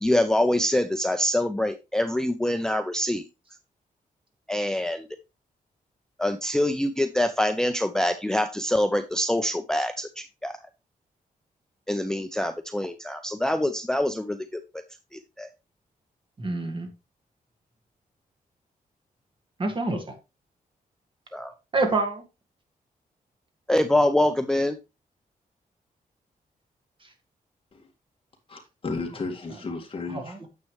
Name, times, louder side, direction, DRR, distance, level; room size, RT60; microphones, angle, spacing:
voice 1, 0.0-3.2 4.5-5.1 6.2-10.6 11.9-14.6 15.1-15.5 21.3-21.5 23.7-24.8, left 1 dB, 5° left, 0.4 m, -25 dB
voice 2, 16.4-16.9 19.6-20.1 21.7-22.2 27.0-27.1 30.1-30.5, right 3 dB, 35° right, 1.8 m, -27 dB
voice 3, 28.5-30.4, left 3 dB, 40° left, 2.0 m, -34 dB
9.5 x 7.4 x 3.2 m
wide cardioid pair, 175°, 15 cm